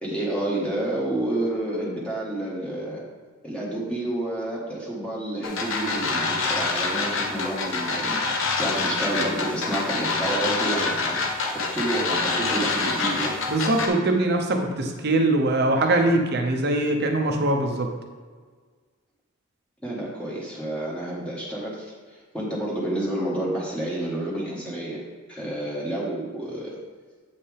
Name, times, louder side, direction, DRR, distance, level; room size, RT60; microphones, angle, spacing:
voice 1, 0.0-3.0 3.4-11.1 11.4-13.3 19.8-21.9 22.3-25.0 25.3-26.8, right 1 dB, 5° left, -6 dB, 1.3 m, -29 dB
sound 1, 5.4-13.9, left 3 dB, 65° left, 0.9 m, -26 dB
voice 2, 13.5-17.9, right 2 dB, 50° right, 3 dB, 0.9 m, -22 dB
8.2 x 5.5 x 3.4 m, 1.5 s
head